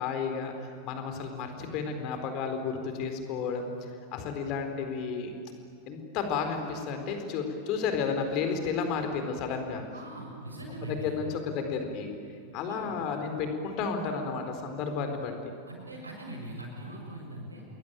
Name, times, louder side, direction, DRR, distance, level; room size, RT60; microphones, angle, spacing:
voice 1, 0.0-5.3 5.9-9.9 10.8-12.1 12.5-15.5, left 5 dB, 40° left, 6 dB, 4.2 m, -32 dB
voice 2, 9.9-11.1 12.6-12.9 15.7-17.6, right 1 dB, 80° right, 1 dB, 6.9 m, -41 dB
29.5 x 21.5 x 9.1 m, 2.5 s
figure-of-eight pair, 90°, 0 cm